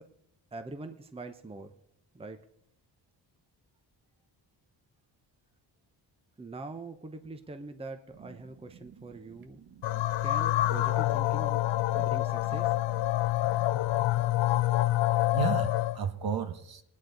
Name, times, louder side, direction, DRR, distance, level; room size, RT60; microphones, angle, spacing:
voice 1, 0.5-1.8 2.1-2.4 6.4-9.6 10.2-11.6 11.9-12.8, right 2 dB, 15° right, 0.8 m, -43 dB
voice 2, 9.6-10.0 11.9-12.1 12.5-12.6 15.3-16.8, right 7 dB, 55° right, 1.3 m, -34 dB
sound 1, 9.8-16.0, left 15 dB, 75° left, 0.6 m, -27 dB
20.0 x 9.5 x 3.9 m
cardioid pair, 105°, 44 cm